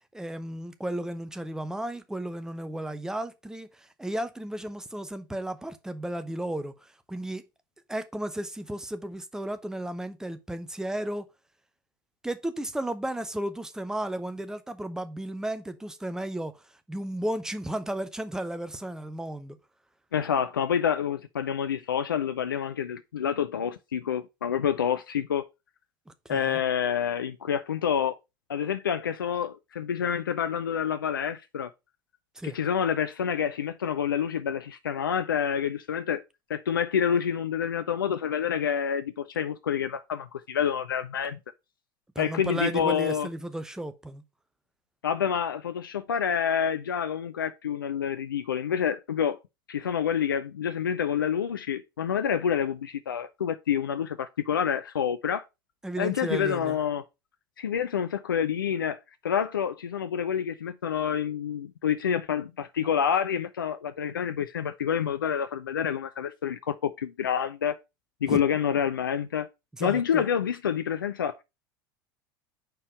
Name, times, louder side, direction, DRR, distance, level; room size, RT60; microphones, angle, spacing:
voice 1, 0.1-7.4 7.9-11.3 12.2-16.5 16.9-19.6 26.1-26.6 32.4-32.6 42.1-44.2 55.8-56.8 68.2-68.4 69.7-70.3, right 1 dB, 5° right, 0.7 m, -34 dB
voice 2, 20.1-25.4 26.3-28.2 28.5-31.7 32.4-36.2 36.5-41.4 42.2-43.3 45.0-49.4 49.7-55.4 56.0-57.0 57.6-67.8 68.2-69.5 69.8-71.4, left 8 dB, 75° left, 0.4 m, -28 dB
5.3 x 4.5 x 4.5 m
figure-of-eight pair, 75°, 11 cm